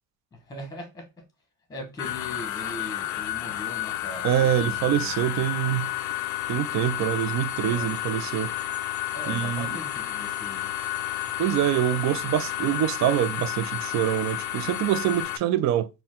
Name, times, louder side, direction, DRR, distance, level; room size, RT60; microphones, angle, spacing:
voice 1, 0.3-1.0 1.7-5.2 7.6-8.0 9.1-10.7, left 1 dB, 10° left, 1.0 m, -40 dB
sound 1, 2.0-15.4, left 14 dB, 85° left, 0.5 m, -31 dB
voice 2, 4.2-5.9 6.5-8.5 9.3-9.8 11.4-15.9, right 12 dB, 65° right, 0.5 m, -25 dB
sound 2, 6.9-15.2, right 1 dB, 10° right, 1.7 m, -45 dB
4.3 x 2.2 x 3.6 m
cardioid pair, 175°, 30 cm